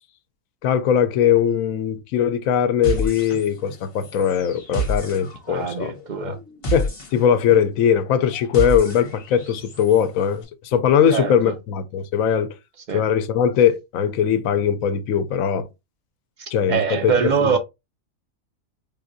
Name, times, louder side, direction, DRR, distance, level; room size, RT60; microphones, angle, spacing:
voice 1, 0.6-5.9 6.2-6.4 6.7-12.5 12.9-15.7 16.5-17.5, left 8 dB, 80° left, 1.0 m, -20 dB
sound 1, 2.8-3.8 4.0-10.0, right 1 dB, 45° left, 1.3 m, -30 dB
voice 2, 5.5-6.4 11.1-11.5 12.9-13.0 16.4-17.6, right 6 dB, 70° right, 0.4 m, -23 dB
5.1 x 2.6 x 2.5 m
omnidirectional pair, 1.4 m